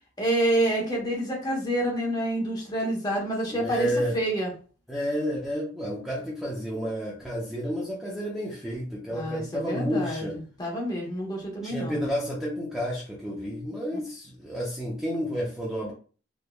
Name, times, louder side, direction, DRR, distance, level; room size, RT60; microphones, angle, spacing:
voice 1, 0.2-4.5 9.1-12.0, right 1 dB, 20° left, -2 dB, 1.0 m, -28 dB
voice 2, 3.5-4.2 4.9-10.4 11.6-15.9, equal, ahead, -5 dB, 0.6 m, -30 dB
3.6 x 2.9 x 2.2 m, 0.39 s
head